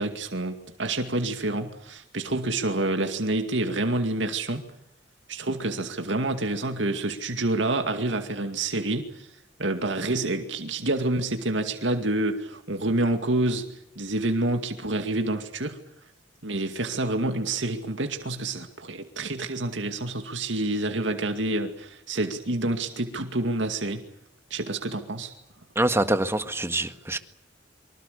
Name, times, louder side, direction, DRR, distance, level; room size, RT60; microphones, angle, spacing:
voice 1, 0.0-4.6 5.3-9.3 9.6-13.7 14.0-15.8 16.4-24.0 24.5-25.3, right 2 dB, 80° right, 2.3 m, -28 dB
voice 2, 25.8-27.2, right 1 dB, 15° right, 1.6 m, -25 dB
25.5 x 24.5 x 6.9 m
head